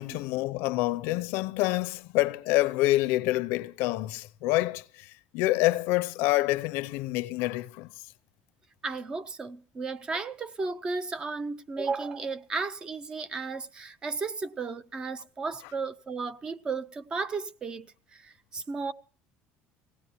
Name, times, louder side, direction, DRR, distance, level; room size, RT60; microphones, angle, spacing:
voice 1, 0.0-7.9, left 18 dB, 75° left, 0.6 m, -27 dB
voice 2, 8.8-18.9, right 4 dB, 20° right, 0.6 m, -34 dB
19.0 x 17.0 x 3.0 m
cardioid pair, 165°, 4 cm